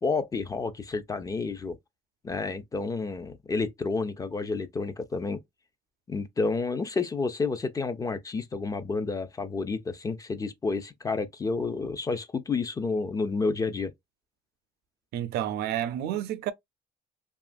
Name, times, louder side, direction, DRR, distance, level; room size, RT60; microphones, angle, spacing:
voice 1, 0.0-1.8 2.2-5.4 6.1-13.9, left 4 dB, 20° left, 0.4 m, -30 dB
voice 2, 15.1-16.5, right 11 dB, 70° right, 0.4 m, -30 dB
2.8 x 2.4 x 2.4 m
cardioid pair, 110°, 17 cm